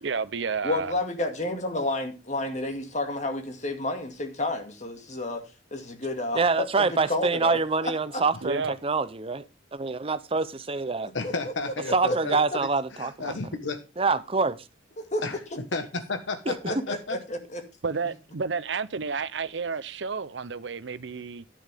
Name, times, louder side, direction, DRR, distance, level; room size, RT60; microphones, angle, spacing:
voice 1, 0.0-0.9 8.4-8.7 17.8-21.5, right 5 dB, 65° right, 0.7 m, -31 dB
voice 2, 0.6-5.4 5.7-8.2 11.2-11.3 11.9-12.2 15.0-15.2 15.5-15.6 16.9-17.6, left 2 dB, 40° left, 2.2 m, -31 dB
voice 3, 6.3-9.4 9.7-11.1 11.9-13.4 14.0-14.6, right 4 dB, 30° right, 0.7 m, -26 dB
voice 4, 11.1-12.3 12.6-13.8 15.2-15.4 15.7-17.2, left 3 dB, 80° left, 1.4 m, -32 dB
11.0 x 10.5 x 3.5 m
head